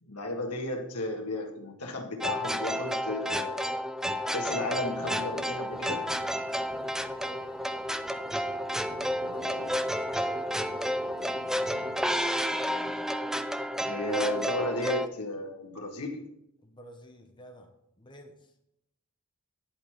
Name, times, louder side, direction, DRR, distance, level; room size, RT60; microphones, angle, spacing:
voice 1, 0.0-3.8 4.3-6.0 9.2-9.8 12.5-13.0 13.9-16.3, left 1 dB, 85° left, 1 dB, 1.6 m, -34 dB
sound 1, 2.2-15.1, equal, ahead, 0.3 m, -31 dB
sound 2, 4.7-12.2, right 1 dB, 55° right, 3.9 m, -50 dB
voice 2, 6.7-7.5 8.7-10.7 16.6-17.7 18.0-18.5, equal, 20° left, 4 dB, 0.9 m, -52 dB
11.0 x 4.8 x 5.8 m, 0.81 s
head